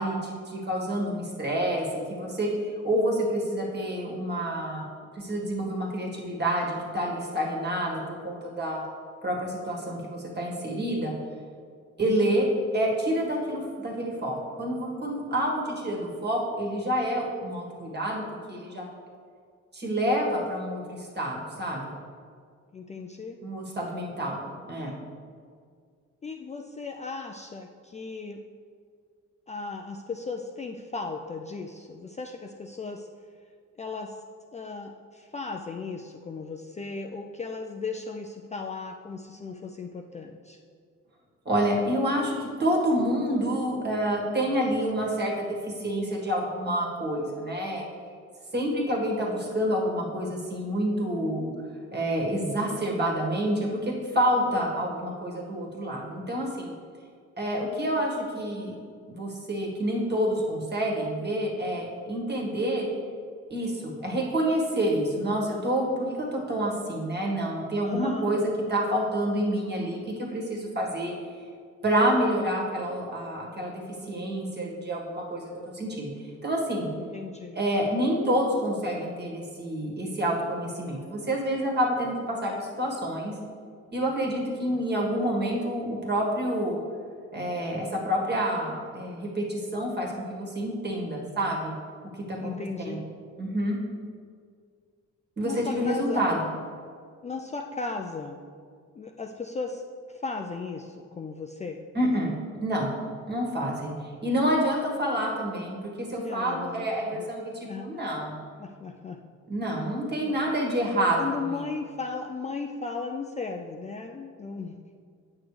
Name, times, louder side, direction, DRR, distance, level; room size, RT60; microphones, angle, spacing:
voice 1, 0.0-4.8 5.1-8.8 9.2-11.1 12.0-12.5 12.7-18.2 18.5-18.8 19.7-21.9 23.4-25.0 41.4-47.8 48.5-51.5 51.9-56.7 57.4-58.7 59.1-62.9 63.5-68.4 68.7-71.1 71.8-76.1 76.4-76.9 77.5-83.3 83.9-86.8 87.3-91.7 92.3-92.5 92.8-93.0 93.4-93.8 95.4-96.4 101.9-102.3 102.6-102.9 103.3-108.4 109.5-111.6, right 1 dB, 35° right, -2 dB, 1.7 m, -28 dB
voice 2, 12.0-12.4 22.7-23.4 26.2-28.4 29.5-33.1 33.8-34.2 34.5-40.6 67.8-68.3 77.0-77.6 92.4-93.0 95.4-96.2 97.2-98.4 98.9-101.8 106.1-107.3 107.7-108.2 108.6-109.2 110.2-110.4 111.1-114.7, left 4 dB, 25° left, 2 dB, 0.4 m, -36 dB
8.5 x 6.0 x 3.3 m, 2.1 s
cardioid pair, 90°, 30 cm